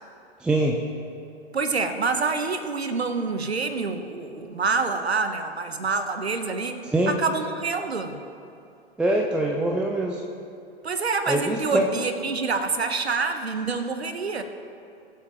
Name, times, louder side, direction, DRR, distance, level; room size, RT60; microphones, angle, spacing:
voice 1, 0.4-0.8 6.9-7.1 9.0-10.2 11.3-11.9, right 1 dB, 5° right, 0 dB, 0.3 m, -23 dB
voice 2, 1.5-8.2 10.8-14.4, right 4 dB, 80° right, 8 dB, 1.0 m, -27 dB
21.0 x 7.5 x 3.0 m, 2.6 s
figure-of-eight pair, 100°, 31 cm